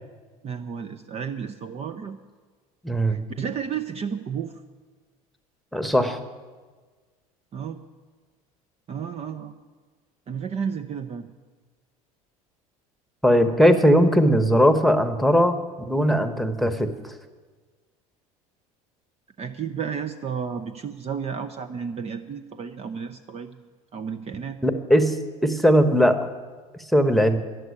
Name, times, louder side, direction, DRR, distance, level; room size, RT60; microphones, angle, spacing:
voice 1, 0.4-2.2 3.1-4.5 7.5-7.8 8.9-9.5 10.3-11.3 19.4-24.6, right 7 dB, 35° right, 8 dB, 0.7 m, -32 dB
voice 2, 2.8-3.2 5.7-6.2 13.2-15.6 15.9-17.1 24.6-25.2 25.4-26.2 26.9-27.4, equal, ahead, 9 dB, 1.2 m, -19 dB
11.0 x 7.8 x 9.8 m, 1.4 s
hypercardioid pair, 80°, 18 cm